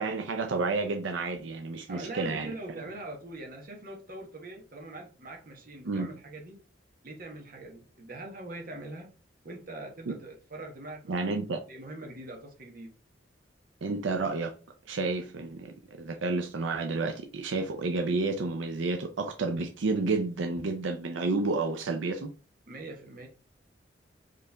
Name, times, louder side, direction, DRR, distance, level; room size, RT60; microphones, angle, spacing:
voice 1, 0.0-2.5 5.8-6.1 10.1-10.2 11.1-11.6 13.8-14.5 14.9-22.3, right 3 dB, 85° right, 0.5 m, -30 dB
voice 2, 1.9-6.6 7.0-9.1 9.4-11.4 11.7-12.9 22.7-23.3, right 2 dB, 50° right, 1.2 m, -42 dB
4.5 x 3.2 x 3.4 m
head